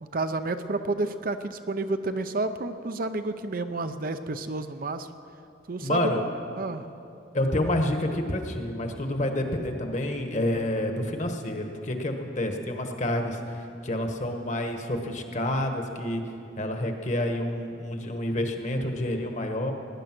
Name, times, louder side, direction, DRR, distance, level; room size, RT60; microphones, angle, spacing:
voice 1, 0.0-5.1 5.7-6.2 6.6-6.9, right 2 dB, 50° right, 9 dB, 0.6 m, -30 dB
voice 2, 5.8-6.2 7.3-16.2 16.6-19.7, left 1 dB, 40° left, 4 dB, 1.3 m, -28 dB
18.5 x 10.5 x 6.0 m, 2.8 s
head